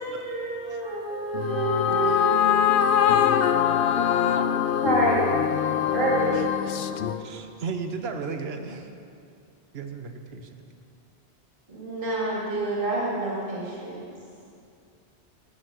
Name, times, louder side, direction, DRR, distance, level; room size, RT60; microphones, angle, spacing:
voice 1, 0.0-2.2 4.8-5.2 5.9-6.3 11.7-14.0, right 1 dB, 55° right, 2.1 m, -27 dB
voice 2, 1.0-7.3, left 9 dB, 85° left, 0.9 m, -23 dB
voice 3, 7.2-8.9 9.7-10.6, right 5 dB, 70° right, 1.0 m, -34 dB
12.0 x 6.2 x 6.5 m
omnidirectional pair, 1.1 m